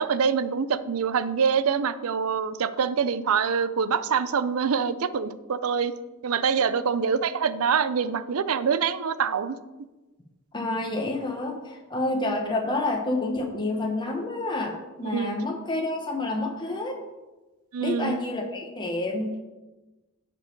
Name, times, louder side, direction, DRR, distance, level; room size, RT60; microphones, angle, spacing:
voice 1, 0.0-5.9 6.2-9.6 15.0-15.4 17.7-18.2, right 6 dB, 80° right, 13 dB, 0.5 m, -25 dB
voice 2, 10.5-17.0 17.8-19.3, left 2 dB, 20° left, 2 dB, 1.1 m, -29 dB
10.0 x 5.3 x 4.6 m, 1.1 s
head